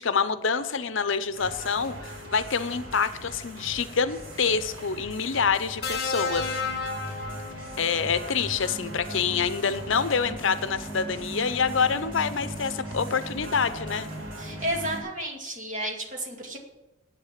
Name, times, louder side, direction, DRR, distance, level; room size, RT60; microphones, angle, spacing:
voice 1, 0.0-6.6 7.8-14.1, left 6 dB, 65° left, 12 dB, 0.7 m, -26 dB
sound 1, 1.3-15.0, right 1 dB, 10° right, 1.3 m, -41 dB
sound 2, 1.3-15.0, right 1 dB, 75° right, 3.4 m, -42 dB
sound 3, 5.8-8.1 9.4-9.6, left 4 dB, 50° left, 1.3 m, -32 dB
voice 2, 14.4-16.6, right 1 dB, 40° right, 0 dB, 2.3 m, -32 dB
10.0 x 8.6 x 7.4 m, 0.96 s
head